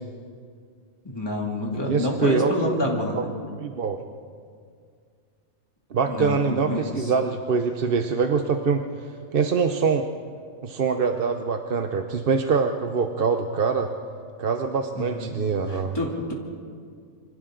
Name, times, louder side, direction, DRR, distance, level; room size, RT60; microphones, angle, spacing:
voice 1, 1.0-3.3 6.1-6.9 14.9-15.2 15.7-16.3, left 1 dB, 15° left, -2 dB, 2.8 m, -28 dB
voice 2, 1.9-3.2 3.6-4.0 5.9-8.8 9.3-10.1 10.6-13.9 14.4-16.0, right 5 dB, 45° right, 5 dB, 0.9 m, -24 dB
27.5 x 24.5 x 3.9 m, 2.2 s
omnidirectional pair, 1.5 m